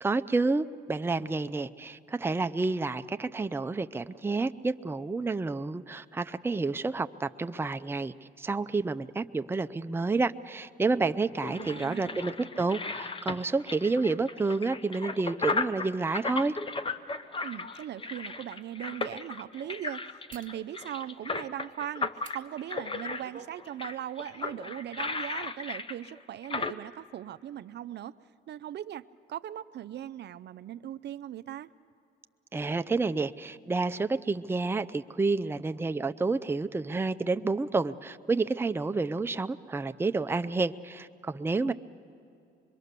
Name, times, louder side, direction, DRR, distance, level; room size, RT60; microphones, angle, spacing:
voice 1, 0.0-16.6 32.5-41.7, right 3 dB, 10° right, 9 dB, 0.5 m, -29 dB
sound 1, 10.9-26.7, left 3 dB, 25° left, 0.8 m, -36 dB
voice 2, 11.4-12.2 17.4-28.1 28.5-29.0 29.3-31.7 41.6-41.7, right 11 dB, 60° right, 13 dB, 0.5 m, -39 dB
sound 2, 18.3-18.4 20.3-20.6 22.2-22.4 22.9-23.6 23.9-24.1, right 7 dB, 45° right, 1.4 m, -49 dB
24.5 x 22.5 x 6.7 m, 2.7 s
cardioid pair, 90°, 20 cm